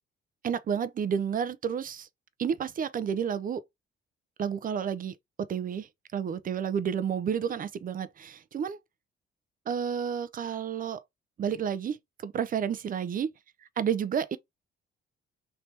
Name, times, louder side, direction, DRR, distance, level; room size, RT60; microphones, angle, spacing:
voice 1, 0.4-2.1 2.4-3.6 4.4-8.8 9.7-11.0 11.4-12.0 12.2-13.3 13.8-14.4, right 7 dB, 45° right, 0.6 m, -30 dB
3.4 x 2.8 x 4.4 m
cardioid pair, 90°, 20 cm